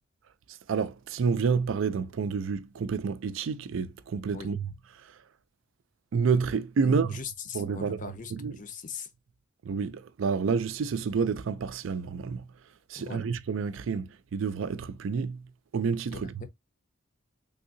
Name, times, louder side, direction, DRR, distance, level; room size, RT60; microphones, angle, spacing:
voice 1, 0.5-4.7 5.0-5.2 6.1-7.2 7.5-8.0 8.3-8.5 9.6-12.5 12.9-16.5, right 5 dB, 80° right, 0.4 m, -29 dB
voice 2, 6.8-9.1 13.0-13.3 16.1-16.5, left 6 dB, 40° left, 0.5 m, -41 dB
3.5 x 2.7 x 2.6 m
head